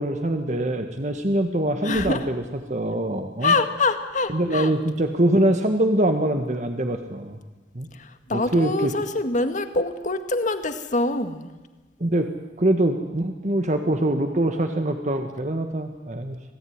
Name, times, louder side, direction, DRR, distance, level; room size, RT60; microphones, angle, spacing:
voice 1, 0.0-3.5 4.3-7.4 7.7-7.9 8.3-8.9 12.0-12.3 12.6-16.4, right 1 dB, 45° right, 6 dB, 1.6 m, -23 dB
voice 2, 1.9-2.2 3.4-4.7 8.3-11.5, left 3 dB, 45° left, 8 dB, 2.0 m, -24 dB
26.5 x 18.0 x 9.6 m, 1.3 s
head